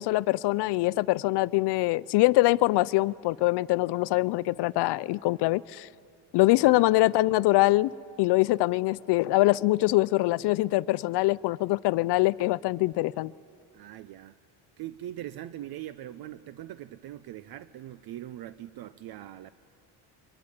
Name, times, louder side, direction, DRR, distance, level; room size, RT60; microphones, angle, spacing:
voice 1, 0.0-5.9 6.3-7.9 8.2-13.3, left 19 dB, 75° left, 0.6 m, -24 dB
voice 2, 13.7-14.4 14.8-19.5, right 13 dB, 60° right, 0.8 m, -41 dB
23.5 x 22.5 x 9.9 m
cardioid pair, 105°, 41 cm